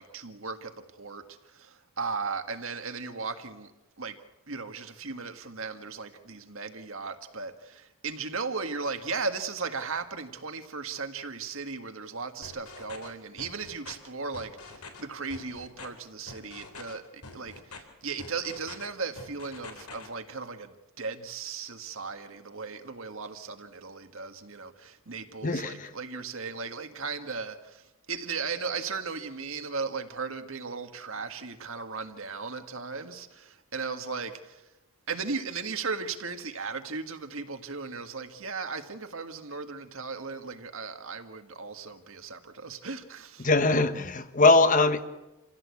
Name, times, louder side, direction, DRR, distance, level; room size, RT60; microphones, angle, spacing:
voice 1, 0.0-3.7 4.0-4.2 4.5-34.7 35.1-43.5, right 4 dB, 65° right, 1.8 m, -36 dB
sound 1, 12.4-13.1 13.4-13.9 14.3-15.0 15.3-15.9 16.3-16.9 17.2-17.8 18.2-18.9 19.2-20.1, left 3 dB, 90° left, 3.6 m, -45 dB
voice 2, 25.4-25.9 43.4-45.0, left 3 dB, 35° left, 1.2 m, -22 dB
27.5 x 16.5 x 8.4 m
head